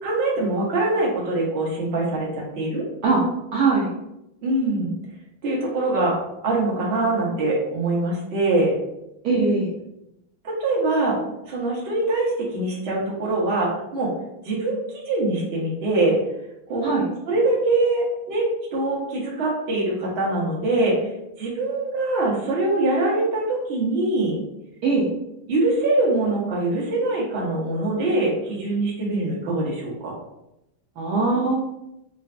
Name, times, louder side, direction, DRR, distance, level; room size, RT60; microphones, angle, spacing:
voice 1, 0.0-2.8 4.4-4.9 5.4-6.1 6.4-8.7 10.4-11.2 11.5-14.1 14.4-14.8 15.1-16.2 16.7-16.9 17.3-20.9 21.4-24.4 25.5-30.1, right 2 dB, 55° right, -4 dB, 0.7 m, -23 dB
voice 2, 3.5-3.9 9.2-9.7 16.8-17.1 24.8-25.1 31.0-31.5, right 3 dB, 80° right, -4 dB, 0.9 m, -20 dB
3.8 x 2.2 x 2.4 m, 0.87 s
omnidirectional pair, 2.3 m